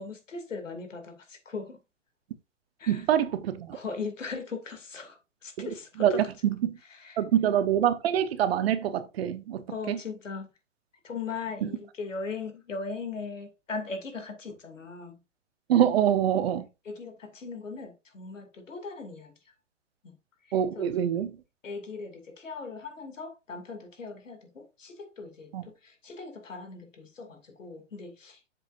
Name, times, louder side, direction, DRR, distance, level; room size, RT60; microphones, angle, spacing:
voice 1, 0.0-1.8 2.8-3.0 3.7-6.2 7.0-7.2 9.7-10.5 11.0-15.2 16.9-19.3 20.0-20.1 20.8-20.9 21.6-25.5 25.8-28.5, left 4 dB, 85° left, 2.6 m, -39 dB
voice 2, 2.9-3.8 5.6-6.8 7.2-10.0 11.6-11.7 15.7-16.7 20.5-21.3 25.5-25.7, right 10 dB, 55° right, 1.1 m, -25 dB
8.0 x 7.4 x 2.6 m
hypercardioid pair, 130°, 37 cm